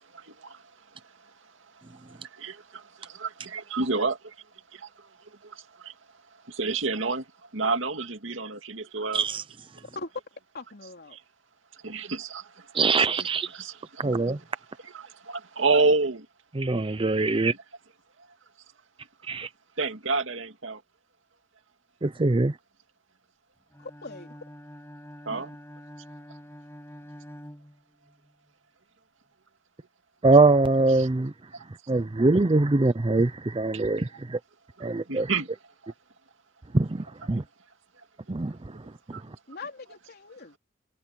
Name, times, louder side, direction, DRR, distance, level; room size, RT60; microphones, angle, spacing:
voice 1, 0.1-0.6 2.2-4.3 4.7-4.9 5.4-5.9 6.5-7.2 7.5-9.2 11.1-11.2 11.8-12.7 13.1-13.2 13.5-14.2 14.8-16.3 19.8-20.8 25.3-25.5 31.0-31.1 33.7-33.8 35.1-35.5 35.8-35.9 39.1-39.2, right 3 dB, 75° right, 2.4 m, -29 dB
voice 2, 10.5-11.2 23.8-24.4 25.3-25.6 39.5-40.6, left 3 dB, 55° left, 3.9 m, -41 dB
voice 3, 12.7-13.5 14.0-14.4 16.5-17.5 19.3-19.5 22.0-22.5 30.2-31.3 31.9-34.4 34.8-35.3 36.7-37.4 38.3-38.8 39.1-39.2, right 3 dB, 25° right, 0.6 m, -23 dB
Bowed string instrument, 23.7-28.3, equal, 15° left, 7.3 m, -46 dB
head